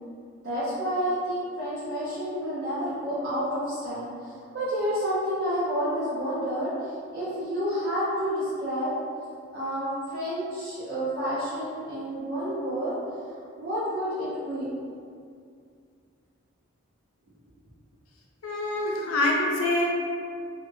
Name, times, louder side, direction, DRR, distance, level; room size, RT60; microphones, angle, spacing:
voice 1, 0.4-8.9 9.5-13.0 13.3-14.7, equal, 50° right, -12 dB, 0.6 m, -30 dB
voice 2, 18.4-19.9, left 2 dB, 90° left, -2 dB, 0.5 m, -25 dB
2.4 x 2.2 x 3.0 m, 2.3 s
head